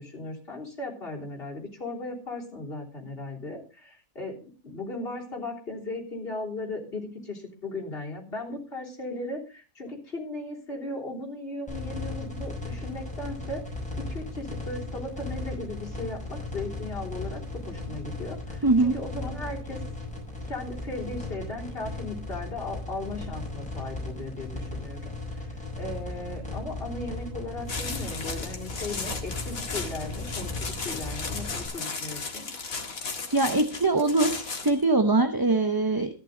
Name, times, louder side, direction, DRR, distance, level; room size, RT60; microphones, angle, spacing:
voice 1, 0.0-13.6 14.1-19.8 20.5-32.5, left 2 dB, 40° left, -1 dB, 3.8 m, -37 dB
sound 1, 11.7-31.7, left 2 dB, 5° left, 6.5 m, -36 dB
voice 2, 18.6-18.9 33.3-36.1, right 2 dB, 20° right, 7 dB, 0.7 m, -22 dB
sound 2, 27.7-34.8, left 4 dB, 70° left, 2.3 m, -35 dB
14.0 x 10.5 x 3.8 m, 0.35 s
omnidirectional pair, 1.5 m